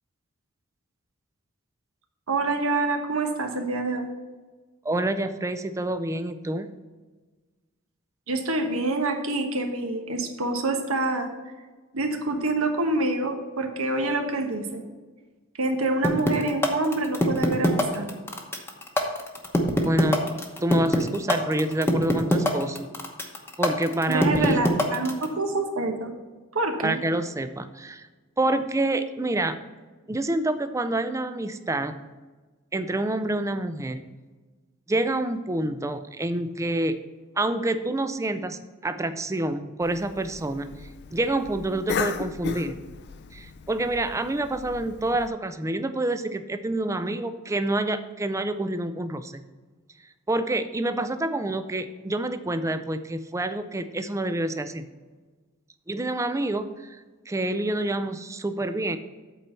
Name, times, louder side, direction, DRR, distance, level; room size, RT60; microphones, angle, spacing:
voice 1, 2.3-4.1 8.3-11.3 11.9-14.8 15.6-18.0 24.1-26.1 26.5-27.0, right 2 dB, 75° right, 5 dB, 1.2 m, -26 dB
voice 2, 4.8-6.7 19.8-22.9 23.6-24.6 26.8-28.1 28.4-29.6 30.1-32.0 32.7-34.0 34.9-37.0 37.4-40.7 41.1-42.8 43.3-49.4 50.3-54.9 55.9-59.0, right 1 dB, 15° right, 10 dB, 0.4 m, -27 dB
sound 1, 16.0-25.3, left 1 dB, 10° left, 0.9 m, -23 dB
Cough, 39.8-45.3, left 5 dB, 55° left, 0.5 m, -36 dB
8.3 x 4.4 x 6.8 m, 1.3 s
head